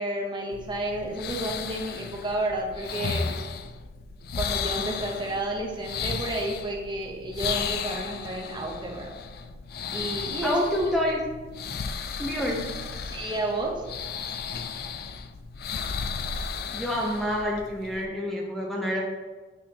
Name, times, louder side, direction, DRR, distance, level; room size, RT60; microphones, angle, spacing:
voice 1, 0.0-3.4 4.4-9.1 9.9-10.7 12.5-12.6 13.0-13.8, right 1 dB, 25° right, -1 dB, 1.0 m, -31 dB
sound 1, 0.5-18.0, left 6 dB, 55° left, 0.4 m, -34 dB
voice 2, 10.4-11.2 12.2-12.6 16.7-19.0, equal, ahead, -3 dB, 0.6 m, -27 dB
8.3 x 4.2 x 2.9 m, 1.3 s
head